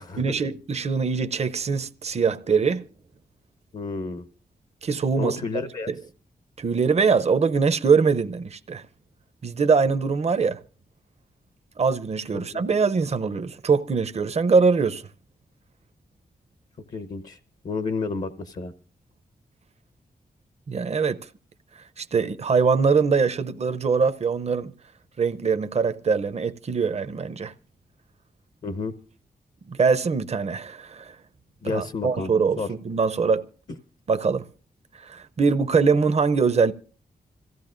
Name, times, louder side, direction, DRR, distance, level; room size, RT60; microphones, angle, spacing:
voice 1, 0.0-2.9 4.8-5.4 5.9-6.0 6.6-8.8 9.4-10.6 11.8-15.0 20.7-21.2 22.0-24.7 25.2-27.5 29.7-31.1 31.6-33.4 34.1-34.5 35.0-36.7, right 5 dB, 40° right, 0.6 m, -23 dB
voice 2, 3.7-4.3 5.2-5.9 12.3-12.8 16.9-17.4 17.6-18.7 28.6-28.9 31.6-32.3 32.6-32.7 33.7-33.8, left 4 dB, 55° left, 0.9 m, -31 dB
26.0 x 15.0 x 2.5 m
cardioid pair, 85°, 16 cm